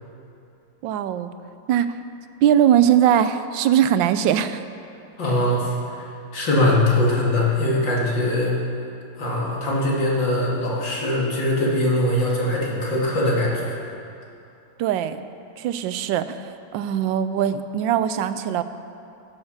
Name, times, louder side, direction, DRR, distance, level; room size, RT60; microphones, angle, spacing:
voice 1, 0.8-1.3 1.7-1.9 2.4-4.6 14.8-15.2 15.6-16.4 16.7-18.6, right 10 dB, 90° right, 12 dB, 1.3 m, -20 dB
voice 2, 5.2-6.1 6.3-8.5 9.2-13.8, left 1 dB, 85° left, -4 dB, 3.1 m, -22 dB
16.5 x 7.2 x 6.5 m, 2.7 s
omnidirectional pair, 2.0 m